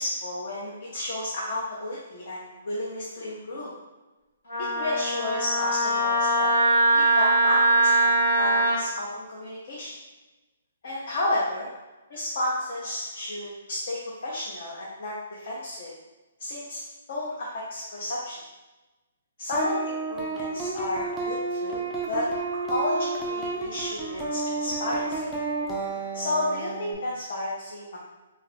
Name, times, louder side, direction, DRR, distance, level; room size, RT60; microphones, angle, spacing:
voice 1, 0.0-3.7 4.6-6.5 6.9-9.9 10.8-11.7 12.1-15.9 16.4-16.8 17.1-18.4 19.4-22.3 22.7-25.3 26.1-28.0, left 1 dB, 50° left, -5 dB, 0.6 m, -32 dB
Wind instrument woodwind instrument, 4.5-8.8, right 1 dB, 80° left, 1.0 m, -22 dB
sound 1, 19.5-26.9, right 3 dB, ahead, 0.3 m, -31 dB
2.8 x 2.4 x 3.3 m, 1.1 s
hypercardioid pair, 175°, 0 cm